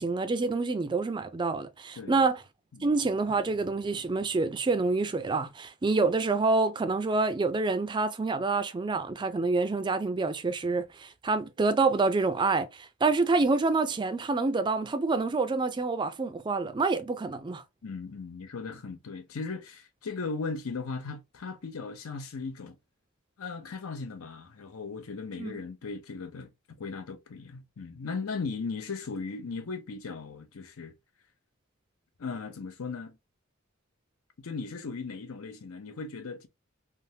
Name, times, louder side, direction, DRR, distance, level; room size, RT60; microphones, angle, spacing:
voice 1, 0.0-2.4 2.8-17.6 25.4-25.6, right 3 dB, 20° right, 0.3 m, -27 dB
voice 2, 17.8-22.8 23.4-26.5 26.8-30.9 32.2-33.2 34.4-36.5, left 4 dB, 85° left, 0.6 m, -37 dB
3.4 x 2.0 x 2.7 m
head